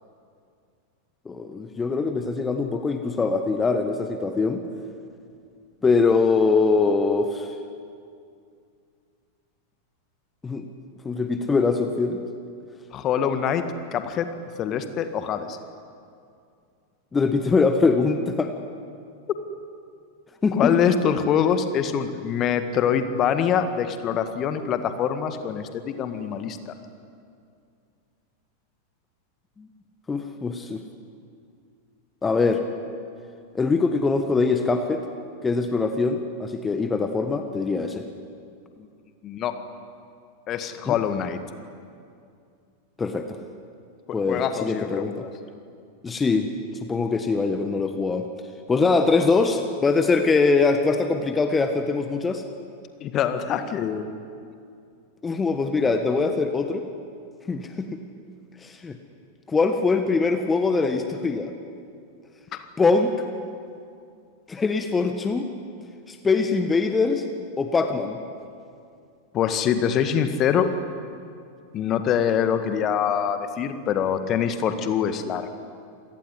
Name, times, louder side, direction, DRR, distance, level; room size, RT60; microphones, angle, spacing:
voice 1, 1.2-4.6 5.8-7.5 10.4-10.7 11.0-12.2 17.1-18.5 20.4-20.7 26.5-26.6 29.6-29.7 30.1-30.8 32.2-32.6 33.5-35.0 35.4-38.1 40.9-41.0 43.0-43.4 44.1-45.2 46.0-46.5 46.8-48.3 48.7-52.4 55.2-56.9 57.5-58.0 58.6-59.0 59.5-61.5 62.8-63.1 64.5-65.5 66.1-67.2 67.6-68.2, left 4 dB, 15° left, 7 dB, 1.6 m, -23 dB
voice 2, 12.9-13.6 13.9-14.3 14.6-15.6 20.5-26.6 39.2-39.6 40.5-41.4 44.1-45.1 53.0-54.1 69.3-70.7 71.7-75.5, left 8 dB, 30° left, 9 dB, 1.8 m, -24 dB
27.5 x 19.0 x 9.7 m, 2.4 s
figure-of-eight pair, 90°, 0 cm